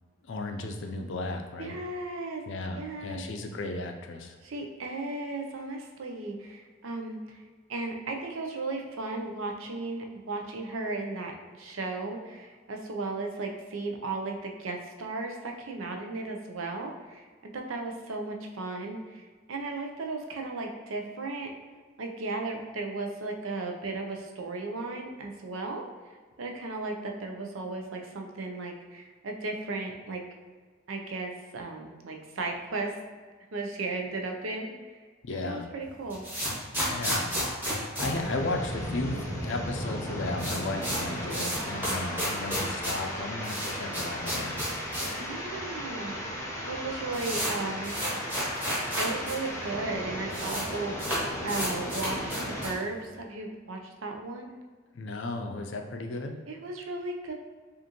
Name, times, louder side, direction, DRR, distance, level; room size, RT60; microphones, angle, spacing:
voice 1, 0.2-1.8 2.5-4.4 35.2-35.7 36.9-37.3 37.8-44.6 54.9-56.4, left 2 dB, 65° left, 4 dB, 0.5 m, -35 dB
voice 2, 1.6-2.4 2.8-3.2 4.4-7.4 7.7-21.5 22.0-25.8 26.4-30.2 30.9-33.0 33.5-35.0 35.3-36.2 45.2-46.1 46.6-47.9 49.0-52.3 52.6-54.5 56.5-57.3, right 3 dB, 80° right, 2 dB, 0.6 m, -35 dB
sound 1, 35.8-39.1 39.3-39.4 39.7-39.8 40.1-45.2 45.5-45.6 46.3-46.4 46.7-49.4 49.6-49.7 49.9-50.7 51.0-52.9, equal, 10° right, 1.2 m, -32 dB
sound 2, 38.0-52.7, equal, 15° left, 0.7 m, -36 dB
5.1 x 2.5 x 2.9 m, 1.5 s
head